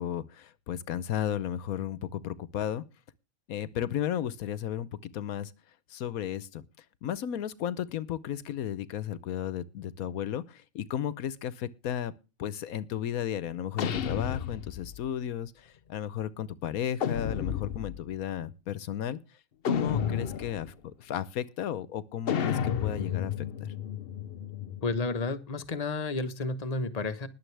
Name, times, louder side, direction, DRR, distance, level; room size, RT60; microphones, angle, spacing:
voice 1, 0.0-2.8 3.5-5.5 5.9-6.6 7.0-12.1 12.4-19.2 19.6-23.7, left 10 dB, 85° left, 1.2 m, -34 dB
sound 1, 13.8-15.1 17.0-18.1 19.6-20.7 22.3-25.0, left 8 dB, 50° left, 0.8 m, -32 dB
voice 2, 24.8-27.3, left 3 dB, 30° left, 1.2 m, -31 dB
20.5 x 7.7 x 3.3 m
omnidirectional pair, 1.5 m